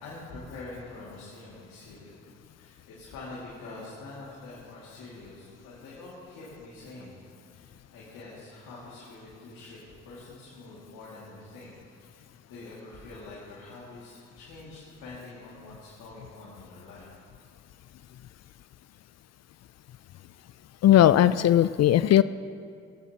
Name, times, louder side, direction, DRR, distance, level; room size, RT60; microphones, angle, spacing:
voice 1, 0.0-2.1 2.6-7.2 7.5-12.2 12.5-17.2, left 2 dB, 85° left, -7 dB, 2.3 m, -45 dB
voice 2, 20.8-22.2, left 12 dB, 55° left, 15 dB, 0.4 m, -18 dB
17.5 x 16.0 x 2.9 m, 2.3 s
hypercardioid pair, 45°, 30 cm